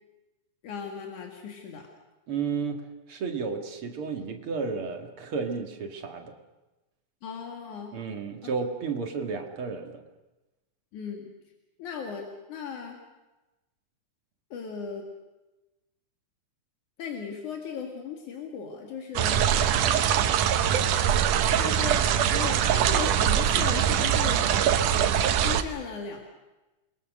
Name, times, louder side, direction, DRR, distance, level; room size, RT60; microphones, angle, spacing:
voice 1, 0.6-1.9 7.2-7.9 10.9-11.3 11.8-13.0 14.5-15.1 17.0-19.4 21.6-24.5 25.4-26.2, left 6 dB, 80° left, 2 dB, 3.6 m, -37 dB
voice 2, 2.3-6.3 7.9-10.0, right 5 dB, 50° right, 4 dB, 2.6 m, -32 dB
sound 1, 19.2-25.6, right 9 dB, 90° right, 2.6 m, -23 dB
28.0 x 21.5 x 6.5 m, 1.1 s
omnidirectional pair, 3.5 m